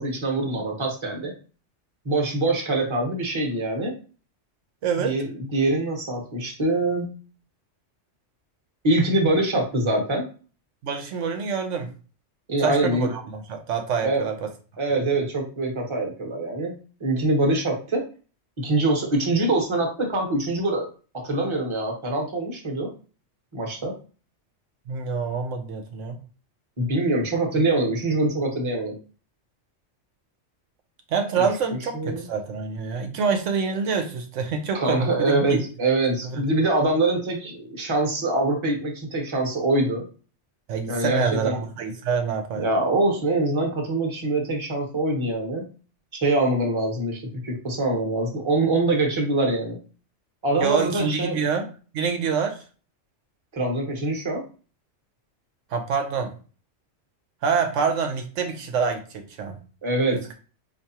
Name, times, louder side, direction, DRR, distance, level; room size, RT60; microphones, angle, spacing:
voice 1, 0.0-1.3 2.0-3.9 5.0-7.1 8.8-10.3 12.5-13.1 14.0-14.2 14.8-18.0 18.6-20.9 21.1-22.9 23.5-23.9 26.8-29.0 31.9-32.3 34.7-40.0 40.9-41.6 42.5-45.6 46.1-49.8 50.4-51.4 53.5-54.5 59.8-60.3, right 2 dB, 25° right, 0 dB, 0.9 m, -24 dB
voice 2, 4.8-5.2 10.8-11.9 12.6-14.5 24.9-26.2 31.1-35.6 36.2-36.4 40.7-42.6 50.6-51.7 51.9-52.6 55.7-56.3 57.4-59.6, right 6 dB, 80° right, 5 dB, 1.0 m, -26 dB
4.6 x 2.7 x 2.8 m, 0.37 s
omnidirectional pair, 1.3 m